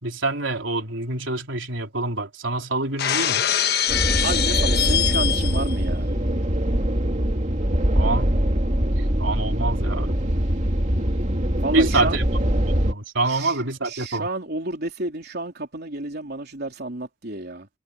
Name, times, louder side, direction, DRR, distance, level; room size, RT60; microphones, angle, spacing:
voice 1, 0.0-3.5 7.9-8.4 9.2-10.2 11.7-12.3 12.7-14.3, right 2 dB, 75° right, 4.2 m, -26 dB
Shatter, 3.0-5.8, left 10 dB, 55° left, 1.3 m, -23 dB
sound 1, 3.9-12.9, equal, 40° right, 2.5 m, -23 dB
voice 2, 4.2-6.1 11.6-12.2 13.2-17.7, right 2 dB, 55° right, 3.5 m, -31 dB
head